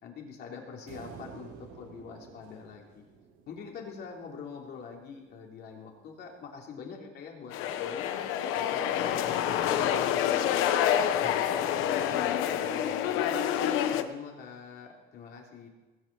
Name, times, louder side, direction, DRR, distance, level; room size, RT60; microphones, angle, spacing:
voice 1, 0.0-3.0 3.5-8.2 8.5-10.0 11.1-11.5 13.2-15.7, left 5 dB, 55° left, 0 dB, 3.0 m, -44 dB
sound 1, 0.9-4.3, right 6 dB, 90° right, 2.8 m, -50 dB
sound 2, 7.5-14.0, left 10 dB, 80° left, 1.0 m, -27 dB
voice 2, 11.3-13.2, left 2 dB, 20° left, 0 dB, 3.1 m, -47 dB
19.5 x 6.6 x 8.1 m, 1.2 s
cardioid pair, 150°, 21 cm